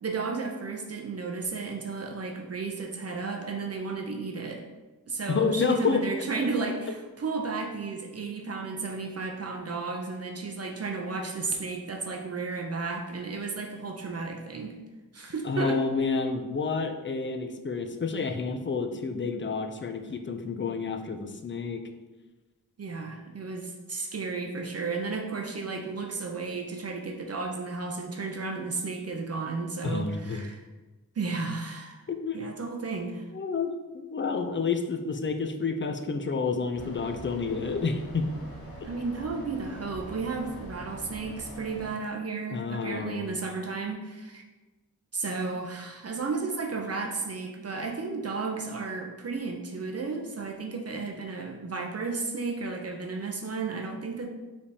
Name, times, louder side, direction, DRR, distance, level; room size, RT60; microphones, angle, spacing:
voice 1, 0.0-4.6 5.1-14.7 15.1-15.8 22.8-30.6 31.2-32.0 32.3-33.3 38.8-44.4 45.1-54.3, right 4 dB, 45° right, 2 dB, 0.5 m, -33 dB
voice 2, 5.3-6.0 15.4-21.8 29.8-30.5 32.1-32.6 33.3-38.3 42.5-43.4, left 4 dB, 35° left, 6 dB, 0.4 m, -29 dB
sound 1, 36.7-41.9, equal, 75° left, 1.4 m, -43 dB
5.0 x 3.3 x 2.7 m, 1.2 s
wide cardioid pair, 105°, 35 cm